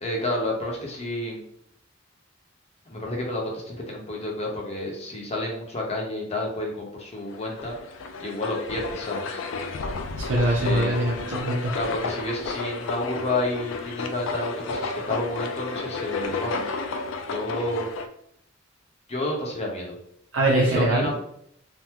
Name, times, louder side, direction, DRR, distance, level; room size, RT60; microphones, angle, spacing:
voice 1, 0.0-1.4 2.9-7.8 8.2-9.4 10.6-11.0 11.7-16.7 17.3-17.9 19.1-19.9 20.5-21.2, left 1 dB, 35° left, -2 dB, 0.8 m, -30 dB
sound 1, 7.3-18.1, left 3 dB, 80° left, 0.4 m, -32 dB
voice 2, 10.2-11.8 20.3-21.1, right 1 dB, 80° right, -3 dB, 0.5 m, -23 dB
3.4 x 2.1 x 2.9 m, 0.70 s
head